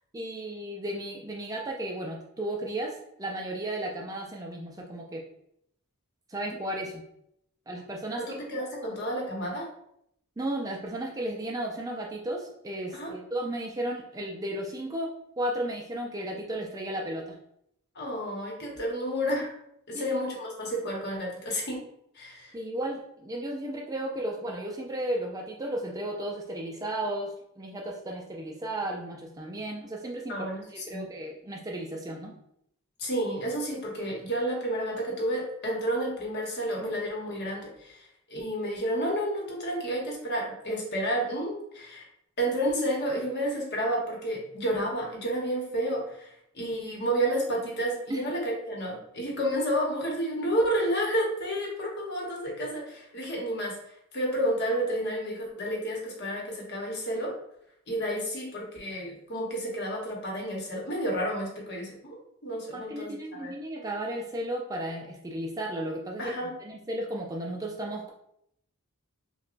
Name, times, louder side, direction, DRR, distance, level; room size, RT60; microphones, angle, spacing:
voice 1, 0.1-5.2 6.3-7.0 7.7-8.2 10.4-15.1 15.4-17.4 19.9-20.2 22.5-32.3 48.1-48.2 62.7-68.1, right 1 dB, 15° right, -1 dB, 0.3 m, -34 dB
voice 2, 8.2-9.7 12.9-13.1 17.9-19.5 19.9-21.9 22.1-22.5 30.3-31.0 33.0-42.0 42.4-53.8 54.1-57.3 57.9-62.2 62.4-63.5 66.2-66.5, equal, 50° left, -2 dB, 1.0 m, -30 dB
5.8 x 2.2 x 2.5 m, 0.75 s
head